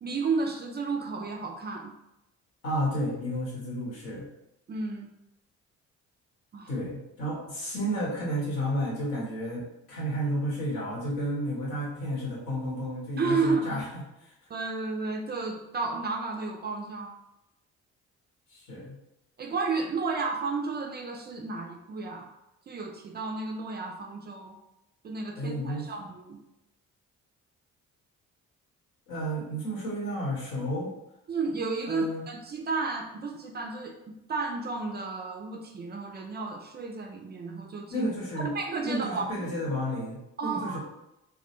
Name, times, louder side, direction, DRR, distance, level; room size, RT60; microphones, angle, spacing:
voice 1, 0.0-1.9 4.7-5.1 6.5-6.7 13.2-13.8 14.5-17.2 19.4-22.3 22.7-24.6 25.0-26.4 31.3-38.1 38.4-39.5 40.4-40.8, right 4 dB, 30° right, 3 dB, 0.4 m, -32 dB
voice 2, 2.6-4.3 6.7-13.9 18.5-19.0 25.4-25.9 29.1-30.9 31.9-32.2 37.9-38.5 38.8-40.8, equal, 75° left, -4 dB, 1.0 m, -32 dB
2.2 x 2.1 x 2.9 m, 0.87 s
hypercardioid pair, 50°, 36 cm